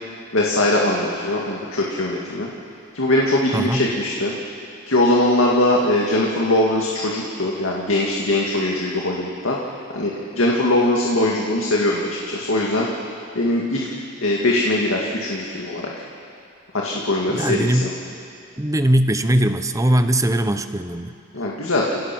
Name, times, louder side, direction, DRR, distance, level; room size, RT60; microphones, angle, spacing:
voice 1, 0.3-2.5 2.9-4.3 4.9-9.6 9.9-12.9 13.4-13.9 14.2-16.0 16.7-17.9 21.3-22.0, left 1 dB, 70° left, -2 dB, 2.2 m, -21 dB
voice 2, 3.5-3.8 17.3-18.2 18.6-21.1, right 1 dB, 15° right, 9 dB, 0.8 m, -20 dB
29.5 x 17.5 x 6.2 m, 2.6 s
head